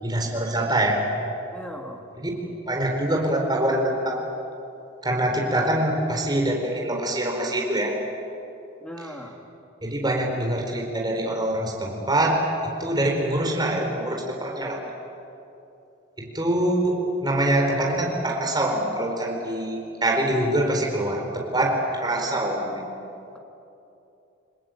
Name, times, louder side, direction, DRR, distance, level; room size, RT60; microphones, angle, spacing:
voice 1, 0.0-1.0 2.2-2.3 2.7-4.2 5.0-7.9 9.8-14.8 16.2-22.9, right 1 dB, 20° right, 0 dB, 4.2 m, -24 dB
voice 2, 1.5-2.0 8.8-9.4, equal, 5° left, 1 dB, 2.5 m, -38 dB
29.5 x 21.0 x 9.1 m, 2.8 s
head